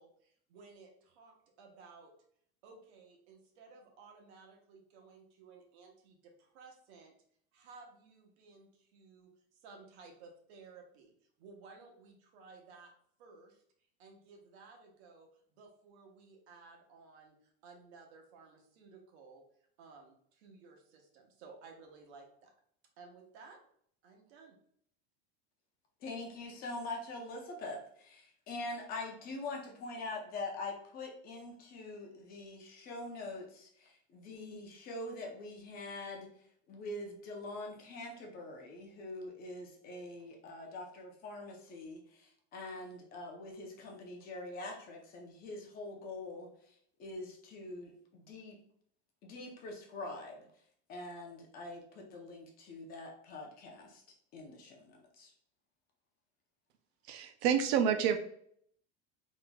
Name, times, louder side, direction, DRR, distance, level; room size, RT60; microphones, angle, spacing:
voice 1, 0.0-2.1 2.6-7.1 7.5-9.3 9.6-11.1 11.4-12.9 13.2-13.6 14.0-17.4 17.6-19.4 19.8-22.5 23.0-23.6 24.0-24.6, right 4 dB, 90° right, 2 dB, 1.0 m, -56 dB
voice 2, 26.0-36.3 36.7-46.5 47.0-48.6 49.2-50.5 50.9-54.0 54.3-55.3, left 2 dB, 30° left, 1 dB, 0.6 m, -44 dB
voice 3, 57.1-58.2, right 8 dB, 70° right, 7 dB, 0.5 m, -28 dB
3.8 x 3.0 x 2.2 m, 0.64 s
cardioid pair, 175°, 32 cm